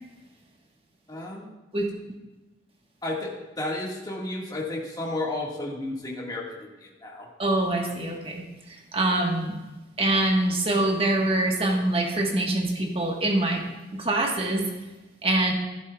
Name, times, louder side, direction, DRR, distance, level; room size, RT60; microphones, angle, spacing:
voice 1, 1.1-1.5 3.0-7.3, left 2 dB, 20° left, -3 dB, 1.7 m, -32 dB
voice 2, 7.4-9.6 10.0-13.6 13.9-14.7 15.2-15.5, right 2 dB, 30° right, 0 dB, 1.3 m, -24 dB
11.5 x 11.0 x 2.3 m, 1.1 s
head